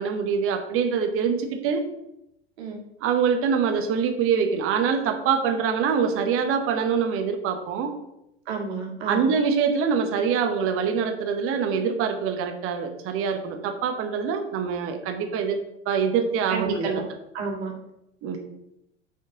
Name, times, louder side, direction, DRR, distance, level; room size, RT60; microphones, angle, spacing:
voice 1, 0.0-1.8 3.0-7.9 9.1-15.6 15.9-16.9 18.2-18.4, right 6 dB, 40° right, 6 dB, 1.1 m, -24 dB
voice 2, 8.5-9.3 16.5-17.0 17.3-17.7, right 4 dB, 70° right, 0 dB, 1.9 m, -30 dB
6.3 x 5.5 x 3.8 m, 0.85 s
hypercardioid pair, 90°, 34 cm